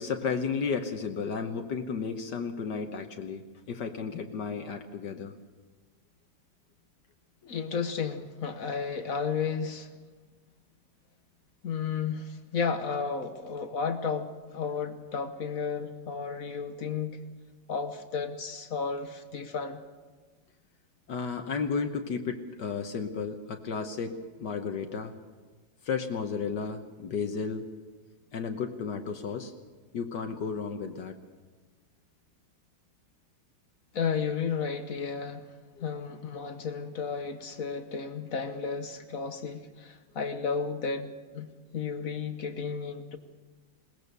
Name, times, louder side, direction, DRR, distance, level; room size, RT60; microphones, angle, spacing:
voice 1, 0.0-5.3 21.1-25.1 25.8-27.7 28.3-29.5 29.9-31.2 35.8-35.9, left 5 dB, 70° left, 5 dB, 1.6 m, -33 dB
voice 2, 7.4-9.9 11.6-17.2 17.7-19.8 33.9-41.5 41.7-43.2, left 5 dB, 55° left, 8 dB, 1.3 m, -33 dB
21.0 x 19.0 x 6.8 m, 1.3 s
omnidirectional pair, 2.0 m